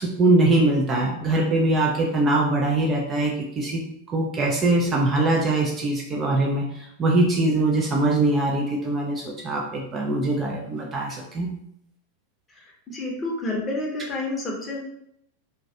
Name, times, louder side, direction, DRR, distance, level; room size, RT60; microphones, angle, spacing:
voice 1, 0.0-3.8 4.1-11.5, right 2 dB, 20° right, -1 dB, 0.3 m, -22 dB
voice 2, 12.9-14.8, left 2 dB, 20° left, -2 dB, 0.7 m, -29 dB
2.3 x 2.1 x 2.6 m, 0.74 s
figure-of-eight pair, 90°, 0 cm